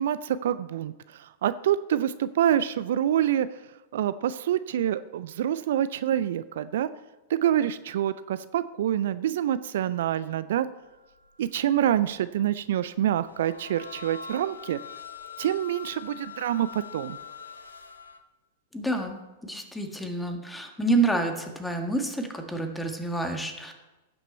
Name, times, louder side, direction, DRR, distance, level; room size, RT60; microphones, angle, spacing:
voice 1, 0.0-3.5 3.9-6.9 7.3-10.7 11.4-14.8 15.4-17.2, right 11 dB, 65° right, 15 dB, 0.4 m, -26 dB
sound 1, 10.8-11.3 11.6-12.1 12.5-18.2, left 6 dB, 85° left, 0.9 m, -43 dB
voice 2, 18.7-23.7, right 2 dB, 5° left, 5 dB, 1.6 m, -28 dB
16.0 x 6.0 x 4.4 m, 1.1 s
figure-of-eight pair, 100°, 0 cm